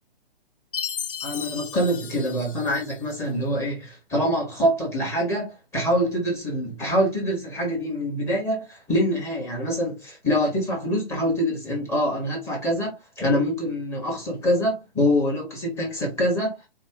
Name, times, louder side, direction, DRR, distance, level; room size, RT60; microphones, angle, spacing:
Chime, 0.7-3.2, left 8 dB, 60° left, 0.7 m, -34 dB
voice 1, 1.2-16.5, equal, 10° left, 1.0 m, -25 dB
4.2 x 2.1 x 3.5 m
figure-of-eight pair, 130°, 30 cm